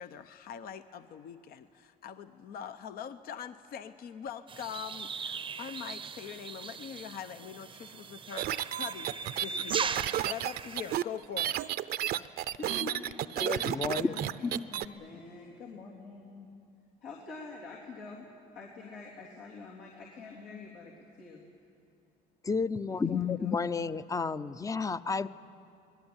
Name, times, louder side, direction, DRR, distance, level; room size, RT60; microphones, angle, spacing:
voice 1, 0.0-11.6, left 8 dB, 65° left, 11 dB, 0.8 m, -43 dB
sound 1, 4.5-10.9, right 5 dB, 30° right, 0.7 m, -39 dB
sound 2, 8.4-14.9, right 12 dB, 70° right, 0.6 m, -32 dB
voice 2, 12.5-16.5 17.0-18.3 18.5-21.4 22.9-23.6, left 4 dB, 85° left, -4 dB, 3.6 m, -46 dB
voice 3, 13.4-14.7 22.4-25.3, left 5 dB, 20° left, 15 dB, 0.6 m, -31 dB
26.5 x 20.0 x 8.9 m, 2.6 s
cardioid pair, 110°, 17 cm